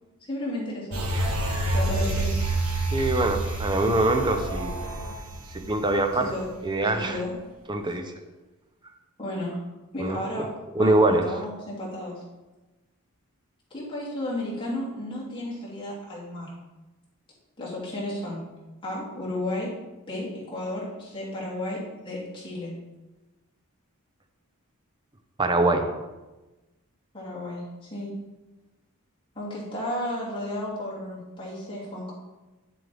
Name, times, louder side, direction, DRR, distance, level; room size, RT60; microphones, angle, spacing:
voice 1, 0.3-1.0 1.7-2.4 6.2-6.5 6.9-7.3 9.2-9.6 9.9-10.5 10.8-12.2 13.7-16.5 17.6-18.4 18.8-19.7 20.1-22.7 27.1-27.6 27.9-28.1 29.3-32.1, left 1 dB, 25° left, -7 dB, 2.7 m, -33 dB
sound 1, 0.9-6.5 6.9-7.0, right 2 dB, 70° right, 1.5 m, -28 dB
voice 2, 2.9-4.8 5.5-6.3 6.6-7.2 7.7-8.1 10.0-10.2 10.7-11.3 25.4-25.9, right 2 dB, 20° right, 5 dB, 0.7 m, -23 dB
9.5 x 7.5 x 3.5 m, 1.1 s
head